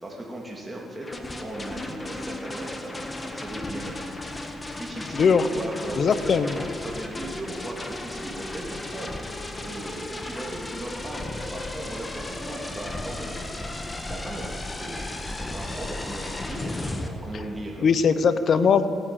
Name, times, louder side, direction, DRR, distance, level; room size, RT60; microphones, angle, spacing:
voice 1, 0.0-4.1 4.7-9.3 9.5-17.8, right 1 dB, 15° right, -3 dB, 2.6 m, -37 dB
sound 1, 1.0-17.1, left 2 dB, 20° left, 1.5 m, -35 dB
voice 2, 5.1-5.4 6.0-6.6 17.8-18.9, left 6 dB, 50° left, 12 dB, 0.8 m, -20 dB
17.5 x 10.0 x 7.1 m, 2.9 s
cardioid pair, 90°, 0 cm